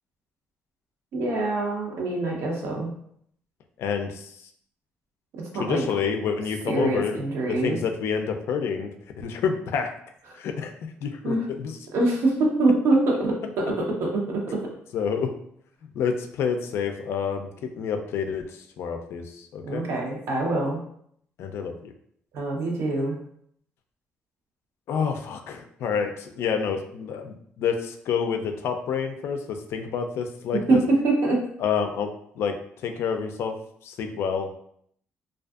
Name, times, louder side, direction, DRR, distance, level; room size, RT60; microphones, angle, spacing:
voice 1, 1.1-2.9 5.5-5.8 6.7-7.8 11.2-11.4 11.9-13.6 14.0-14.6 19.7-20.8 22.3-23.2 30.7-31.4, right 2 dB, 75° right, -1 dB, 0.7 m, -24 dB
voice 2, 3.8-4.5 5.5-7.2 7.5-8.9 9.2-9.9 10.3-10.7 11.0-11.8 14.9-15.3 15.9-19.9 21.4-21.9 24.9-30.8 31.6-32.1 32.4-33.6 33.8-34.5, left 6 dB, 70° left, 6 dB, 0.3 m, -28 dB
2.5 x 2.3 x 2.3 m, 0.68 s
cardioid pair, 75°, 4 cm